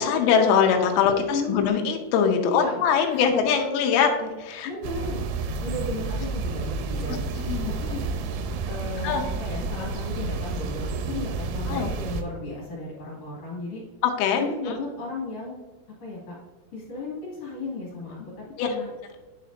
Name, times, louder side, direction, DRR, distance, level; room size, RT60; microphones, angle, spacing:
voice 1, 0.0-4.7 7.5-7.7 9.0-9.2 11.7-11.9 14.0-14.8 18.6-18.7, left 7 dB, 85° left, 3 dB, 3.3 m, -22 dB
voice 2, 1.0-1.7 2.4-3.3 4.6-5.2 5.6-7.2 7.6-8.1 8.7-13.8 14.3-15.6 16.0-16.4 16.7-18.9, left 2 dB, 45° left, -6 dB, 2.5 m, -34 dB
sound 1, 4.8-12.2, right 3 dB, 85° right, 3.2 m, -30 dB
9.3 x 6.5 x 2.7 m, 1.3 s
omnidirectional pair, 5.8 m